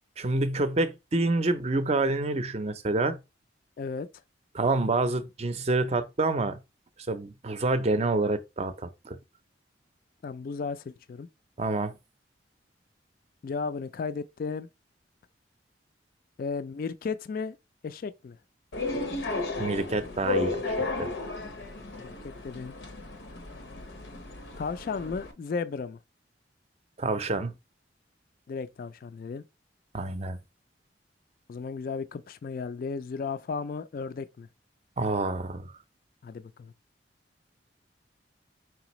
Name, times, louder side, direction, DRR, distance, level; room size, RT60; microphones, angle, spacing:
voice 1, 0.2-3.2 4.5-6.6 7.1-9.2 11.6-11.9 19.6-21.1 27.0-27.5 29.9-30.4 35.0-35.7, right 2 dB, 35° right, 0.5 m, -27 dB
voice 2, 3.8-4.1 10.2-11.3 13.4-14.7 16.4-17.6 17.8-18.4 22.0-22.7 24.6-26.0 28.5-29.4 31.5-34.5 36.2-36.7, left 5 dB, 50° left, 0.3 m, -34 dB
sound 1, 18.7-25.3, left 3 dB, 80° left, 0.8 m, -34 dB
4.8 x 3.3 x 3.0 m
head